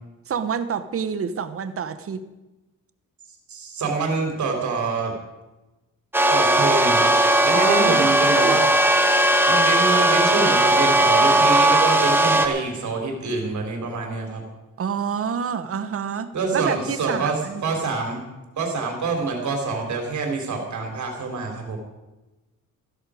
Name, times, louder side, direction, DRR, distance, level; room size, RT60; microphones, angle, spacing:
voice 1, 0.3-2.2 7.5-8.1 8.4-8.6 14.8-17.6, right 7 dB, 45° right, 11 dB, 1.0 m, -27 dB
voice 2, 3.5-5.1 6.3-7.2 7.4-8.7 9.5-14.4 16.3-18.2 18.6-21.8, right 3 dB, 60° right, 2 dB, 3.7 m, -26 dB
sound 1, 6.1-12.5, right 1 dB, 5° right, 1.2 m, -18 dB
14.5 x 13.5 x 5.0 m, 1.1 s
cardioid pair, 145°, 32 cm